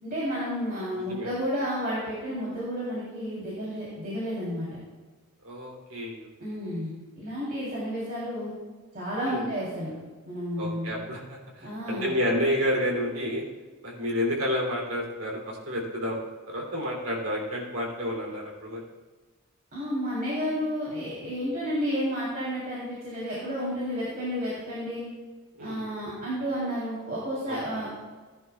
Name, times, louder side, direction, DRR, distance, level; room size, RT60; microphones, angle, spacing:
voice 1, 0.0-4.8 6.4-8.5 8.9-9.9 10.2-10.9 11.6-12.1 19.7-25.0 25.6-28.0, equal, 45° right, -8 dB, 3.3 m, -31 dB
voice 2, 5.4-6.3 9.2-9.5 10.6-13.4 13.8-16.2 16.5-18.8 25.6-25.8 27.5-27.6, equal, 80° right, -1 dB, 3.1 m, -30 dB
17.5 x 10.5 x 2.4 m, 1.3 s
head